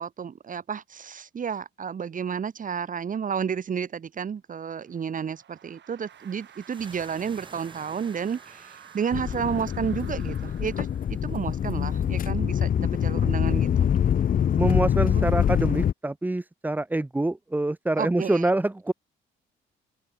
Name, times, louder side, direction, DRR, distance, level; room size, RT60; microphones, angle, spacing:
voice 1, 0.0-13.9 15.1-15.3 18.0-18.5, right 7 dB, 40° right, 1.3 m, -31 dB
sound 1, 4.6-11.6, right 9 dB, 60° right, 5.2 m, -52 dB
sound 2, 6.1-12.3, right 3 dB, 25° right, 6.1 m, -52 dB
sound 3, 9.1-15.9, left 9 dB, 45° left, 0.6 m, -24 dB
voice 2, 14.6-18.9, right 2 dB, 10° right, 0.7 m, -26 dB
cardioid pair, 90°, 20 cm